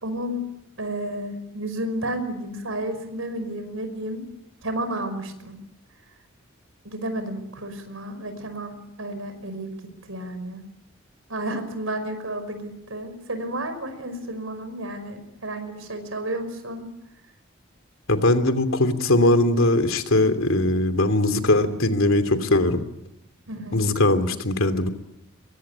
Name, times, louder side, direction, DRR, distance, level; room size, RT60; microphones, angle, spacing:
voice 1, 0.0-0.4 0.8-4.2 4.6-5.6 6.8-9.7 10.1-10.6 11.3-16.9 23.5-23.9, right 1 dB, 80° right, 9 dB, 5.4 m, -31 dB
voice 2, 18.1-22.8 23.7-24.9, left 2 dB, 80° left, 9 dB, 2.9 m, -20 dB
23.0 x 23.0 x 9.7 m, 0.84 s
head